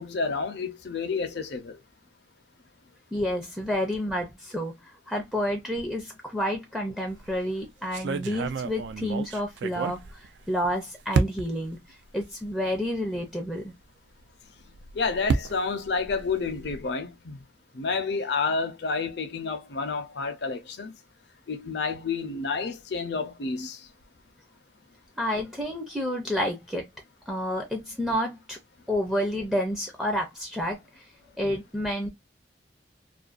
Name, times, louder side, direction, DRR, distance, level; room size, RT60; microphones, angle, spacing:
voice 1, 0.0-1.8 14.9-17.4 17.7-20.9 21.5-23.9, left 4 dB, 65° left, 0.6 m, -30 dB
voice 2, 3.1-13.7 25.2-26.9 27.3-28.6 28.9-31.1 31.4-32.1, equal, 5° right, 0.4 m, -30 dB
sound 1, 7.1-7.4 7.9-10.7 11.1-11.7 12.4-12.5 12.8-12.9 14.6-16.9, right 4 dB, 70° right, 0.3 m, -30 dB
2.5 x 2.2 x 2.4 m
head